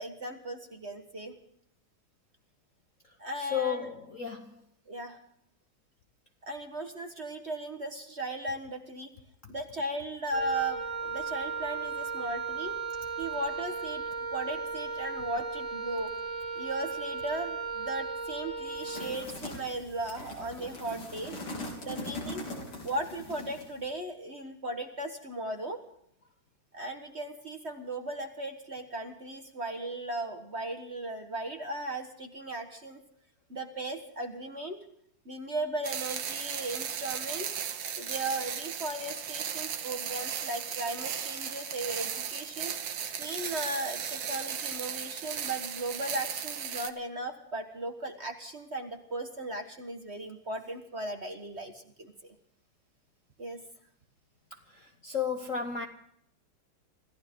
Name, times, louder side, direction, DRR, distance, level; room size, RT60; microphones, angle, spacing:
voice 1, 0.0-1.3 3.2-3.9 4.9-5.2 6.5-9.1 9.5-12.8 13.2-14.0 14.3-16.1 16.5-21.3 21.8-22.4 22.8-25.8 26.7-33.0 33.5-34.8 35.2-37.5 38.0-42.7 43.2-52.1 53.4-53.6, right 1 dB, 35° right, 5 dB, 1.5 m, -37 dB
voice 2, 3.4-4.6 54.7-55.9, left 7 dB, 45° left, 5 dB, 1.1 m, -33 dB
Wind instrument woodwind instrument, 10.3-19.2, right 5 dB, 15° right, 2.7 m, -36 dB
sound 1, 18.7-23.8, left 1 dB, 85° left, 4.7 m, -41 dB
sound 2, 35.8-46.9, right 8 dB, 60° right, 1.7 m, -36 dB
26.0 x 15.0 x 3.7 m, 0.71 s
omnidirectional pair, 2.4 m